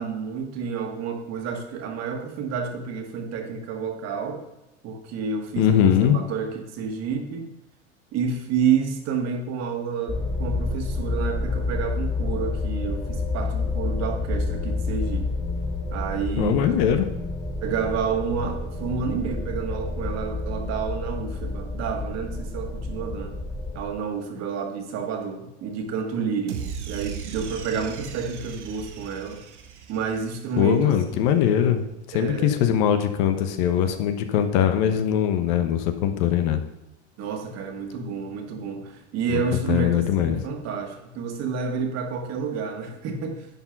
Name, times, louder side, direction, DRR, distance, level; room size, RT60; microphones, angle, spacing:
voice 1, 0.0-4.4 4.8-7.5 8.1-15.4 15.9-16.7 17.6-23.4 23.8-29.4 29.9-30.9 32.1-32.6 37.2-43.5, right 5 dB, 45° right, 3 dB, 1.9 m, -29 dB
voice 2, 5.6-6.2 16.4-17.1 30.6-31.8 32.1-36.6 39.3-39.4 39.7-40.4, left 9 dB, 60° left, 8 dB, 1.1 m, -21 dB
sound 1, 10.1-23.9, left 3 dB, 15° left, 2.6 m, -29 dB
sound 2, 26.5-30.8, right 7 dB, 80° right, 1.3 m, -37 dB
10.5 x 4.6 x 5.9 m, 0.92 s
hypercardioid pair, 95°, 35 cm